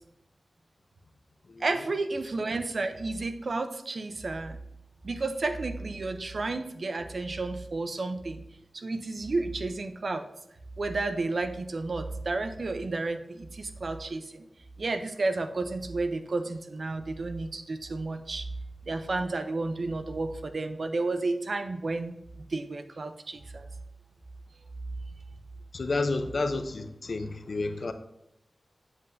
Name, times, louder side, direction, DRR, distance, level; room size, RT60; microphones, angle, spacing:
voice 1, 1.6-4.6 5.0-8.4 8.7-10.3 10.8-14.4 14.8-18.5 18.9-22.2 22.5-23.7, right 3 dB, 65° right, 9 dB, 0.5 m, -32 dB
voice 2, 25.7-27.9, left 3 dB, 70° left, 8 dB, 0.6 m, -30 dB
7.8 x 7.5 x 2.6 m, 0.82 s
wide cardioid pair, 80°, 0 cm